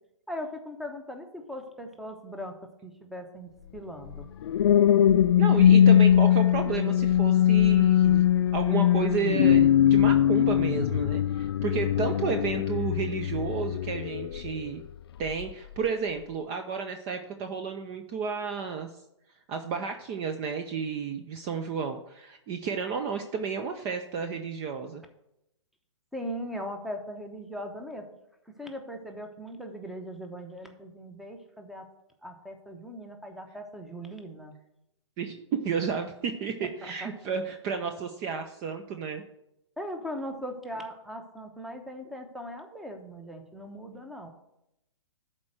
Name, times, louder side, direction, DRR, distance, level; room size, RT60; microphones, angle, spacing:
voice 1, 0.3-2.6 2.8-4.3 26.1-28.1 28.6-31.9 32.2-34.6 36.8-37.1 39.8-44.3, equal, ahead, 5 dB, 0.9 m, -39 dB
sound 1, 4.1-14.7 15.2-15.5, left 10 dB, 55° left, 0.4 m, -21 dB
voice 2, 5.4-8.2 8.5-14.8 15.2-18.9 19.5-25.0 35.2-39.2, right 6 dB, 25° right, 6 dB, 0.6 m, -32 dB
11.0 x 4.4 x 6.3 m, 0.85 s
figure-of-eight pair, 125°, 16 cm